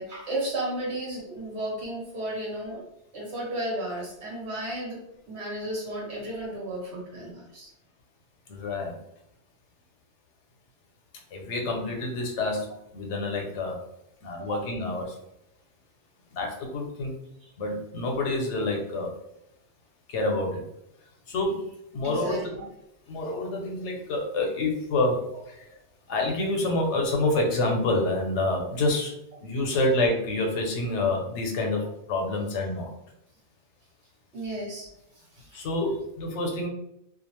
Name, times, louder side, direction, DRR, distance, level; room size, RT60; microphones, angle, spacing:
voice 1, 0.0-2.8 3.1-5.0 5.3-7.7 14.4-14.7 17.4-17.5 22.0-22.6 34.3-34.9 35.1-35.6, right 1 dB, 70° right, -4 dB, 1.3 m, -34 dB
voice 2, 8.5-9.0 11.3-13.8 14.2-15.2 16.3-17.1 17.6-19.1 20.1-20.6 21.3-21.7 21.9-22.4 23.1-25.2 25.5-25.7 26.1-29.1 29.4-32.9 35.5-36.7, left 2 dB, 85° left, 1 dB, 1.0 m, -27 dB
2.4 x 2.4 x 3.0 m, 0.80 s
omnidirectional pair, 1.2 m